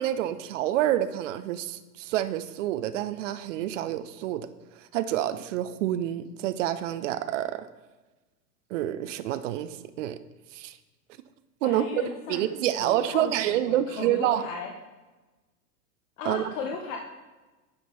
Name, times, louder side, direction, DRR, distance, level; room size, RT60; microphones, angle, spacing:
voice 1, 0.0-4.5 4.9-7.7 8.7-10.2 10.5-10.8 11.6-12.0 12.3-14.5 16.3-16.5, right 12 dB, 50° right, 13 dB, 0.5 m, -28 dB
voice 2, 11.6-12.5 12.8-14.7 16.2-17.0, left 5 dB, 55° left, 2 dB, 0.9 m, -36 dB
9.6 x 4.6 x 4.0 m, 1.2 s
hypercardioid pair, 100°, 48 cm